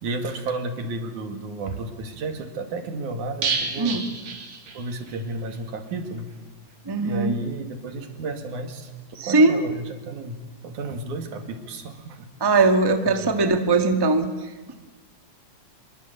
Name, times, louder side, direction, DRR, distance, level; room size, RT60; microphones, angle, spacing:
voice 1, 0.0-6.3 7.0-8.9 9.2-10.4 10.6-12.7 13.0-13.4, right 2 dB, 90° right, 6 dB, 3.7 m, -33 dB
sound 1, 3.4-5.2 5.5-5.6 5.9-6.0, right 5 dB, 70° right, 3.9 m, -30 dB
voice 2, 6.9-7.3 9.2-9.6 12.4-14.3, right 3 dB, 10° right, 6 dB, 1.2 m, -20 dB
27.0 x 22.0 x 8.3 m, 1.3 s
omnidirectional pair, 3.3 m